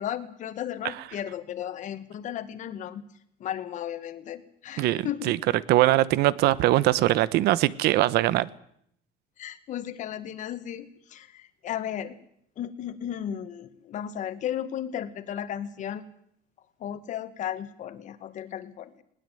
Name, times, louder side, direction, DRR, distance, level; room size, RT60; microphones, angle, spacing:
voice 1, 0.0-3.1 3.4-5.4 9.4-12.2 12.6-16.1 16.8-19.0, left 10 dB, 45° left, 11 dB, 1.9 m, -35 dB
voice 2, 4.8-5.4 5.7-8.5, right 15 dB, 65° right, 19 dB, 1.0 m, -22 dB
20.5 x 19.0 x 9.3 m, 0.71 s
cardioid pair, 165°, 18 cm